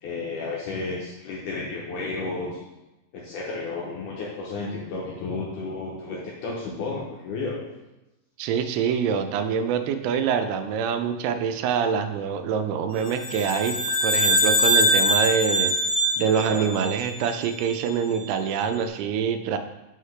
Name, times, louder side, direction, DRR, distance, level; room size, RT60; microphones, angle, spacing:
voice 1, 0.0-2.6 3.1-7.6 16.4-16.7, left 3 dB, 80° left, -4 dB, 1.9 m, -32 dB
voice 2, 8.4-15.7 16.2-19.6, right 7 dB, 90° right, 8 dB, 2.5 m, -25 dB
sound 1, 13.1-17.6, equal, 60° left, 1.0 m, -23 dB
5.8 x 5.7 x 3.2 m, 0.99 s
omnidirectional pair, 4.5 m